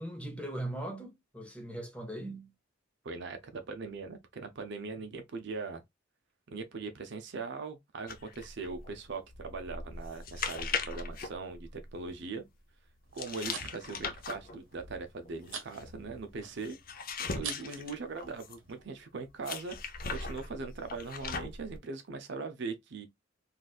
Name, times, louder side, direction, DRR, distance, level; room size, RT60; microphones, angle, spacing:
voice 1, 0.0-2.5, right 1 dB, 5° left, 0.9 m, -39 dB
voice 2, 3.0-5.8 6.5-12.4 13.1-16.8 17.3-23.1, right 4 dB, 65° right, 0.6 m, -40 dB
sound 1, 8.1-12.2 13.2-18.7 19.4-21.8, left 4 dB, 50° left, 0.6 m, -40 dB
sound 2, 13.0-18.8, right 6 dB, 80° right, 0.9 m, -47 dB
3.9 x 2.4 x 2.3 m
head